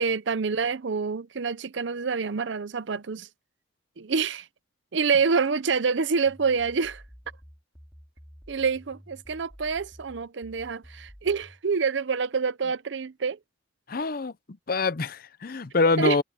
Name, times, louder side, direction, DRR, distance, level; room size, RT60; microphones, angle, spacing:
voice 1, 0.0-3.3 4.0-4.5 4.9-7.0 8.5-13.4 16.0-16.2, right 5 dB, 65° right, 0.6 m, -27 dB
sound 1, 6.3-11.6, equal, ahead, 3.1 m, -50 dB
voice 2, 13.9-14.3 14.7-16.2, left 3 dB, 50° left, 0.6 m, -25 dB
head